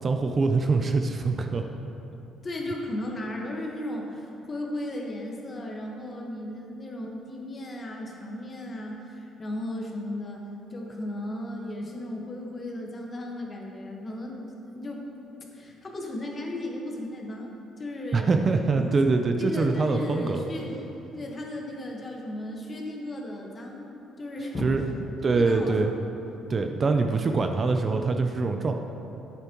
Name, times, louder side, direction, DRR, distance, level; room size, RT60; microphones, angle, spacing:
voice 1, 0.0-1.6 18.1-20.4 24.6-24.8 25.2-25.9 26.5-28.7, right 3 dB, 35° right, 5 dB, 0.5 m, -24 dB
voice 2, 2.4-10.4 10.7-14.4 14.7-15.1 15.5-18.3 18.8-18.9 19.4-20.8 21.1-23.9 24.2-24.7 25.3-25.8, left 1 dB, 30° left, 0 dB, 1.3 m, -35 dB
10.5 x 8.2 x 3.0 m, 2.9 s
cardioid pair, 115°, 0 cm